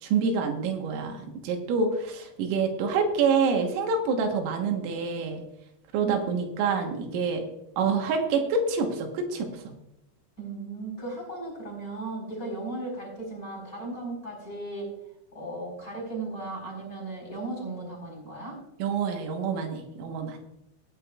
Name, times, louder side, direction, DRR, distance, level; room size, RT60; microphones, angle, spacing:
voice 1, 0.0-5.4 5.9-7.5 7.8-9.6 18.8-20.4, right 5 dB, 80° right, 3 dB, 3.8 m, -27 dB
voice 2, 6.0-6.4 10.4-14.9 15.3-18.6, right 2 dB, 20° left, 0 dB, 4.0 m, -36 dB
19.0 x 9.7 x 2.3 m, 0.85 s
omnidirectional pair, 5.9 m